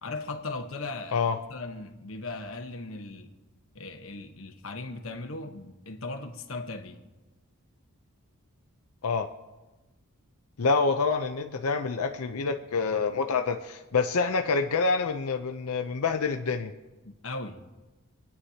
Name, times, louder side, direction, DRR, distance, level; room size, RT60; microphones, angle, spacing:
voice 1, 0.0-1.2 1.5-3.3 3.7-7.0 17.0-17.6, left 3 dB, 65° left, 1.2 m, -38 dB
voice 2, 10.6-16.7, left 4 dB, 85° left, 0.6 m, -27 dB
27.5 x 9.5 x 2.8 m
head